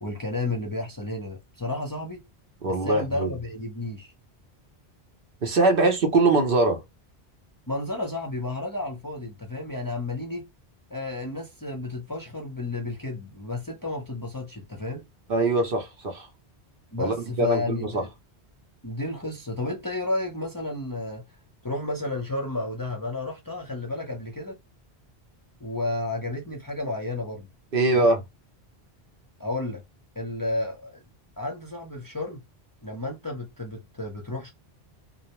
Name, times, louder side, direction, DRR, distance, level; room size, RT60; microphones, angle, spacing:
voice 1, 0.0-2.3 2.7-4.1 7.7-10.5 10.9-15.1 16.9-18.1 18.8-21.3 21.6-24.6 25.6-27.5 27.9-28.1 29.4-29.8 30.2-31.0 31.4-32.4 32.8-34.5, left 2 dB, 25° left, 0.5 m, -32 dB
voice 2, 2.6-3.3 5.4-6.8 15.3-16.3 17.0-18.0 27.7-28.2, right 2 dB, 60° right, 0.9 m, -22 dB
2.6 x 2.1 x 2.8 m
omnidirectional pair, 1.1 m